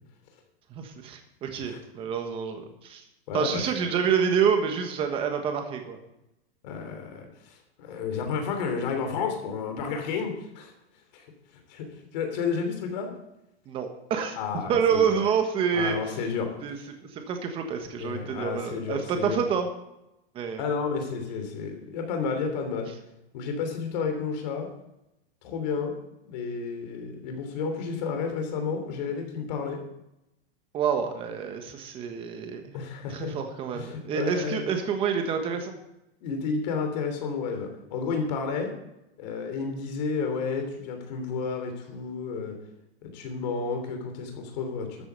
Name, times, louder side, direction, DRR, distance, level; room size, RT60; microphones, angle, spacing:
voice 1, 0.7-3.0 3.3-6.0 13.7-14.4 14.7-16.0 16.6-16.8 17.1-19.7 20.3-20.7 30.7-32.7 33.1-35.7, right 7 dB, 15° right, 6 dB, 1.3 m, -27 dB
voice 2, 3.3-3.6 6.6-10.7 11.1-11.3 11.7-13.1 14.4-15.2 15.7-16.9 18.0-19.4 20.6-22.9 23.3-24.7 25.4-26.0 26.2-29.8 32.7-33.3 33.7-34.6 36.2-38.7 39.2-42.6 43.0-45.0, left 5 dB, 40° left, 5 dB, 3.1 m, -31 dB
13.0 x 8.6 x 6.8 m, 0.87 s
supercardioid pair, 175°, 32 cm